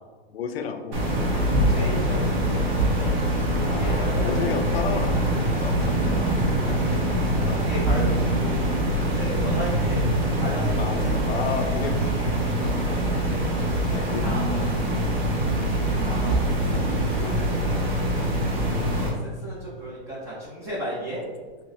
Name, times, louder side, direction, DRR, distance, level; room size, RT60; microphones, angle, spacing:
voice 1, 0.3-1.0 1.7-2.0 3.6-5.2 5.6-6.3 6.9-7.0 7.3-7.8 10.8-12.9 13.9-14.2, left 6 dB, 75° left, 6 dB, 0.5 m, -33 dB
sound 1, 0.9-19.1, right 1 dB, 50° right, 0.9 m, -24 dB
voice 2, 1.3-2.2 2.5-3.1 3.5-4.8 6.6-7.2 7.5-10.1 10.4-11.5 12.6-13.2 14.2-14.7 16.0-17.8 18.9-21.2, equal, 10° right, -6 dB, 0.4 m, -35 dB
5.7 x 2.1 x 2.5 m, 1.4 s
hypercardioid pair, 155°, 31 cm